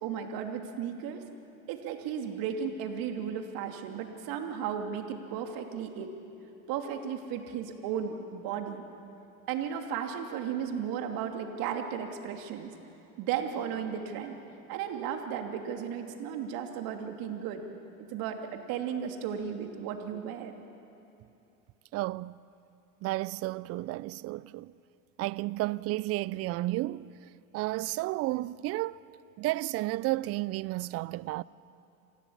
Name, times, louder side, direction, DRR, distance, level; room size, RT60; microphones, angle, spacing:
voice 1, 0.0-1.2 1.7-6.1 6.7-8.8 9.5-12.7 13.2-14.4 14.7-17.6 18.0-20.6, right 8 dB, 55° right, 2.8 m, -35 dB
voice 2, 21.9-22.4 23.0-24.7 25.2-27.1 27.5-29.0 29.4-31.4, right 18 dB, 35° right, 0.5 m, -32 dB
27.0 x 16.5 x 8.7 m
hypercardioid pair, 95°, 43 cm